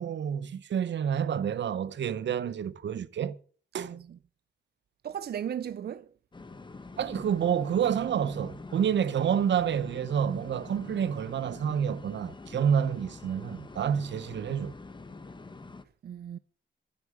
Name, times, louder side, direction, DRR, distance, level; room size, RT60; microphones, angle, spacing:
voice 1, 0.0-3.4 3.7-3.9 7.0-14.7, right 8 dB, 85° right, 0.9 m, -28 dB
voice 2, 3.8-4.2 5.0-6.1 16.0-16.4, right 9 dB, 60° right, 0.6 m, -36 dB
sound 1, 6.3-15.8, left 3 dB, 25° left, 1.1 m, -45 dB
12.0 x 9.7 x 6.9 m
wide cardioid pair, 130°, 18 cm